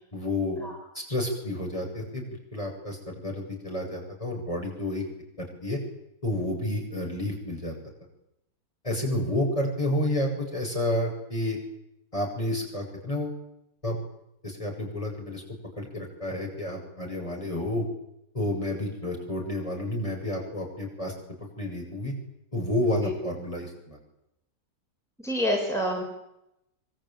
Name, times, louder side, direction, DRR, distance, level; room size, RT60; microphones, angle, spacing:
voice 1, 0.1-0.6 0.9-2.2 2.5-5.0 5.4-5.8 6.2-7.7 8.8-11.6 12.1-13.4 13.8-14.0 14.4-15.4 15.8-17.8 18.3-21.1 21.6-22.1 22.5-24.0, left 1 dB, 20° left, 0 dB, 7.7 m, -30 dB
voice 2, 25.2-26.0, equal, ahead, -2 dB, 6.3 m, -27 dB
25.5 x 23.5 x 9.2 m, 0.83 s
omnidirectional pair, 1.6 m